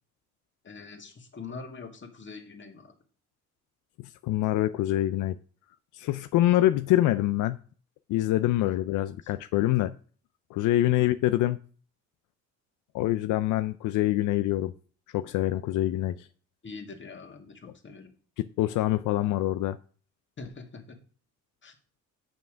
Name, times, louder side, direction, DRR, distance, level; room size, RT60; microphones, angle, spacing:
voice 1, 0.6-3.0 8.6-8.7 9.2-9.3 11.0-11.1 16.6-18.1 20.4-21.0 21.6-21.8, left 4 dB, 40° left, 1.9 m, -43 dB
voice 2, 4.0-5.4 5.9-7.6 8.1-9.9 10.5-11.6 12.9-14.7 15.1-16.3 18.6-19.8, left 14 dB, 85° left, 0.5 m, -25 dB
7.1 x 6.0 x 6.2 m
cardioid pair, 90°, 30 cm